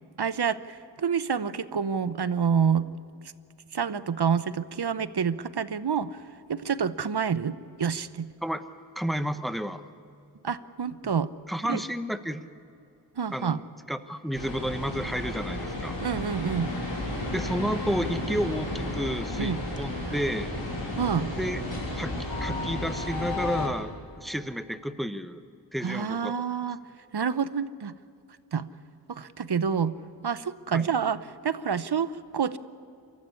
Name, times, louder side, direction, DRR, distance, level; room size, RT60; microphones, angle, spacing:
voice 1, 0.2-2.9 3.7-6.2 6.5-8.3 10.4-11.3 11.7-11.8 13.2-13.6 16.0-16.7 19.4-19.6 21.0-21.3 25.8-26.8 27.1-27.9 28.5-28.7 29.1-30.0 30.2-32.6, right 7 dB, 65° right, 14 dB, 0.9 m, -28 dB
voice 2, 8.9-9.8 11.0-11.1 11.5-12.5 13.3-13.6 13.9-16.0 17.3-20.6 21.3-21.6 21.9-23.9 24.2-25.4 25.7-26.3 30.7-30.9, equal, ahead, 10 dB, 1.1 m, -31 dB
sound 1, 14.3-23.7, left 1 dB, 80° left, 6.0 m, -32 dB
23.5 x 14.0 x 9.8 m, 2.5 s
wide cardioid pair, 50°, 43 cm